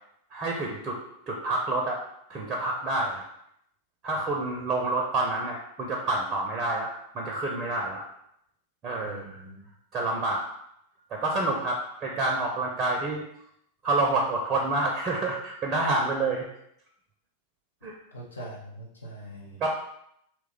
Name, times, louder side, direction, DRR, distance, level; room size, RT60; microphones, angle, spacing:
voice 1, 0.3-1.0 1.3-2.0 2.3-3.3 4.0-8.0 8.8-9.4 9.9-10.5 11.1-13.2 13.8-16.5 17.8-17.9 19.6-19.7, right 2 dB, 30° right, 0 dB, 0.5 m, -28 dB
voice 2, 9.0-9.6 18.1-19.6, right 1 dB, 80° left, -3 dB, 0.6 m, -42 dB
2.9 x 2.1 x 3.7 m, 0.75 s
figure-of-eight pair, 90°, 0 cm